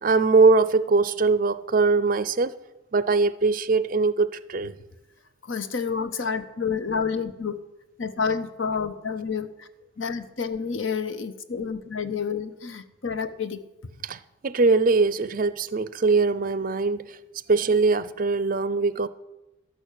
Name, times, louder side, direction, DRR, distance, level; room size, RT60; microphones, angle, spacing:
voice 1, 0.0-2.5 2.9-4.8 14.0-17.2 17.5-19.1, right 4 dB, 40° right, 0.4 m, -21 dB
voice 2, 5.4-7.6 8.0-9.7 10.0-13.6, left 5 dB, 70° left, 0.9 m, -29 dB
12.5 x 6.2 x 8.3 m
head